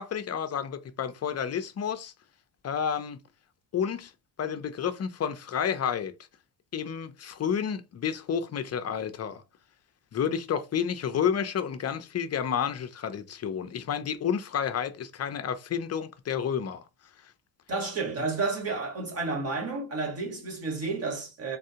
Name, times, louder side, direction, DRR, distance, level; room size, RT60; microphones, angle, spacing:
voice 1, 0.0-2.1 2.6-3.2 3.7-4.1 4.4-6.1 6.7-9.4 10.1-16.8, left 8 dB, 35° left, 0.5 m, -30 dB
voice 2, 17.7-21.6, right 3 dB, 30° right, 1.4 m, -31 dB
3.6 x 2.3 x 2.8 m
cardioid pair, 95°, 46 cm